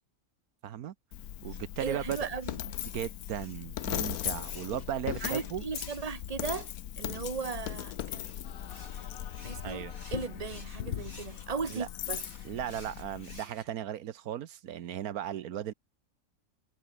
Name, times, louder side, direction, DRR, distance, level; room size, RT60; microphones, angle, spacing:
voice 1, 0.6-0.9 1.4-2.2 2.9-5.6 9.6-9.9 11.7-11.9 12.4-15.7, right 10 dB, 85° right, 1.4 m, -36 dB
Coin (dropping), 1.1-13.4, left 12 dB, 85° left, 1.3 m, -39 dB
sound 1, 1.5-7.3 8.1-13.7, left 2 dB, 70° left, 8.3 m, -54 dB
voice 2, 1.8-2.8 5.2-6.7 7.0-8.2 9.4-12.2, right 5 dB, 25° right, 1.4 m, -37 dB
sound 2, 8.4-13.9, left 7 dB, 45° left, 1.0 m, -49 dB
omnidirectional pair, 1.5 m